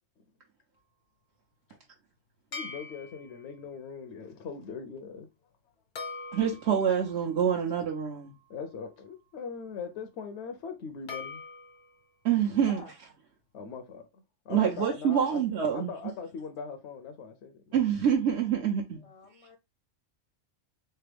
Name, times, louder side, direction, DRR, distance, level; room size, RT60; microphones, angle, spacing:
sound 1, 2.5-3.5 6.0-9.1 11.1-12.0, left 4 dB, 90° left, 1.4 m, -44 dB
voice 1, 2.5-5.3 8.5-11.4 13.5-15.4 15.7-17.8, left 5 dB, 70° left, 0.9 m, -41 dB
voice 2, 6.3-8.3 12.2-13.1 14.5-15.9 17.7-19.0, right 8 dB, 70° right, 1.0 m, -26 dB
voice 3, 19.0-19.6, left 4 dB, 40° left, 0.6 m, -49 dB
3.8 x 3.4 x 3.3 m
omnidirectional pair, 1.2 m